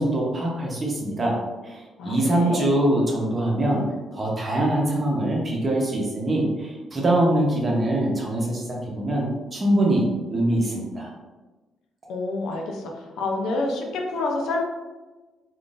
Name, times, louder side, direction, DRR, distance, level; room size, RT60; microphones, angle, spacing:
voice 1, 0.0-1.4 1.6-3.8 4.1-11.1, right 1 dB, 35° right, -2 dB, 0.9 m, -23 dB
voice 2, 2.0-2.7 12.1-12.9 13.2-14.6, left 2 dB, 80° left, 1 dB, 0.5 m, -27 dB
3.7 x 2.4 x 2.5 m, 1.2 s
cardioid pair, 90°, 0 cm